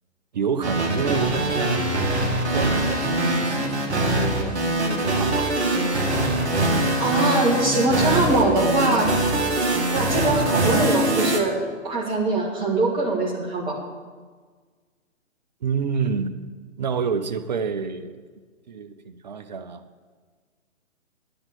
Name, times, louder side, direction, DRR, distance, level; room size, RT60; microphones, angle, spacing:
voice 1, 0.3-1.9 2.5-5.5 15.6-16.4 16.8-18.2 18.7-19.8, right 5 dB, 35° right, 9 dB, 0.6 m, -28 dB
sound 1, 0.6-11.4, right 1 dB, 55° right, 1.9 m, -23 dB
voice 2, 7.0-9.1 9.9-11.6 11.8-13.8, right 2 dB, 15° right, -1 dB, 1.6 m, -22 dB
10.5 x 7.3 x 7.5 m, 1.5 s
figure-of-eight pair, 130°, 39 cm